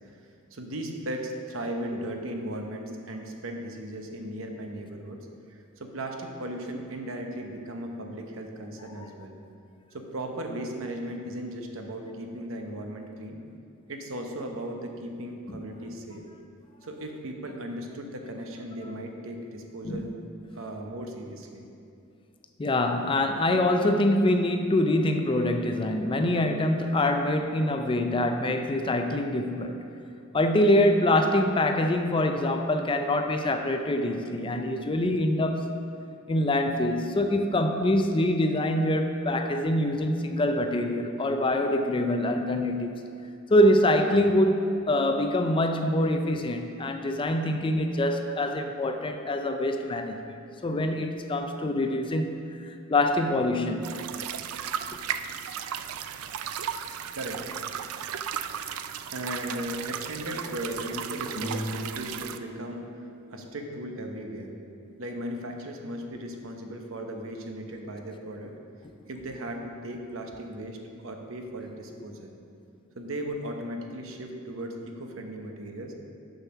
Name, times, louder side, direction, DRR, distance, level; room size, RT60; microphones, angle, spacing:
voice 1, 0.5-5.2 5.5-9.4 9.9-13.4 13.9-16.2 16.8-20.1 20.5-21.6 57.1-57.4 59.1-62.8 63.3-64.5 65.0-68.5 69.1-72.3 72.9-75.9, right 1 dB, 65° right, 3 dB, 0.9 m, -37 dB
voice 2, 22.6-29.8 30.3-35.8 36.3-42.9 43.5-50.3 50.6-52.4 52.6-53.9, left 1 dB, 25° left, 6 dB, 0.4 m, -25 dB
sound 1, 53.8-62.4, right 8 dB, 85° right, 0.4 m, -35 dB
sound 2, 61.3-64.9, equal, 90° left, 1.3 m, -40 dB
6.6 x 6.1 x 5.8 m, 2.6 s
head